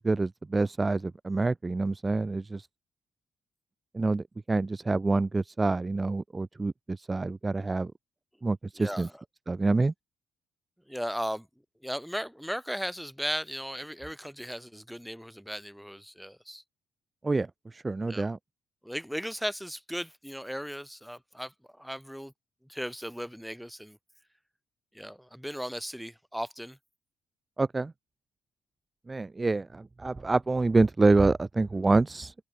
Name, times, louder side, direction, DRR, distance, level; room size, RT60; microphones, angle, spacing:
voice 1, 0.0-2.7 3.9-7.9 8.4-9.1 9.5-9.9 17.2-17.5 17.7-18.4 27.6-27.9 29.1-32.3, right 3 dB, 20° right, 0.4 m, -27 dB
voice 2, 8.7-9.2 10.9-11.5 11.8-16.6 18.1-18.3 18.8-22.3 22.7-24.0 24.9-26.8, equal, ahead, 2.8 m, -36 dB
open air
cardioid pair, 90°, 0 cm